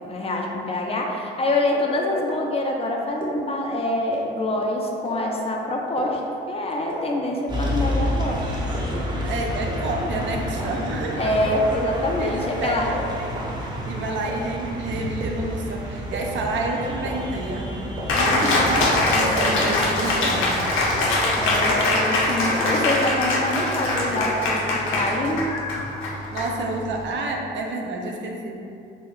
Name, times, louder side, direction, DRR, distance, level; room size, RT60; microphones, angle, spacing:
voice 1, 0.0-8.4 9.2-9.3 11.2-13.0 13.3-13.4 18.1-18.8 21.4-25.4, left 1 dB, 30° left, 0 dB, 0.5 m, -25 dB
sound 1, 2.3-2.4 3.2-3.3 4.1-4.2 5.0-5.1 6.0-6.1 6.9-7.0 7.8-7.9 8.7-8.8 9.7-9.8 10.6-10.7 11.5-11.6 12.4-12.5 13.3-13.4 14.3-14.4 15.2-15.3 16.1-16.2 17.0-17.1 18.0-18.1 18.9-19.0, right 4 dB, 45° right, 0.8 m, -33 dB
sound 2, 7.5-21.7, equal, 20° right, 0.6 m, -30 dB
voice 2, 9.2-11.4 12.2-13.5 13.9-20.6 26.3-28.7, right 2 dB, 65° right, 1 dB, 0.5 m, -29 dB
Cheering, 18.1-27.0, left 2 dB, 90° left, 0.5 m, -23 dB
3.1 x 2.7 x 3.0 m, 2.6 s
cardioid pair, 90°, 20 cm